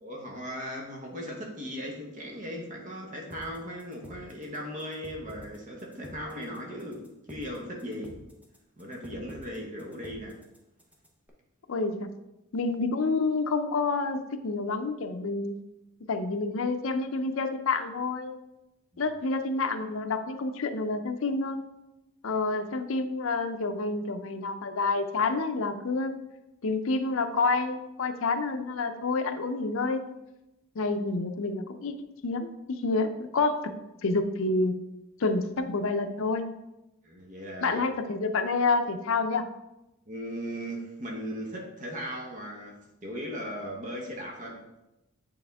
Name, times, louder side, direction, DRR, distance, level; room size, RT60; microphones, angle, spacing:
voice 1, 0.0-8.2 8.8-10.4 18.9-19.0 37.0-37.8 40.1-44.8, equal, 35° right, 0 dB, 1.0 m, -38 dB
sound 1, 3.3-11.3, equal, 5° right, 0.7 m, -49 dB
voice 2, 11.7-12.1 12.5-15.6 16.1-18.3 19.0-21.6 22.2-26.1 26.6-30.2 30.8-32.0 32.2-33.6 34.0-34.7 35.2-36.4 37.6-39.4, left 3 dB, 70° left, 7 dB, 0.5 m, -28 dB
9.1 x 3.5 x 3.5 m, 0.93 s
head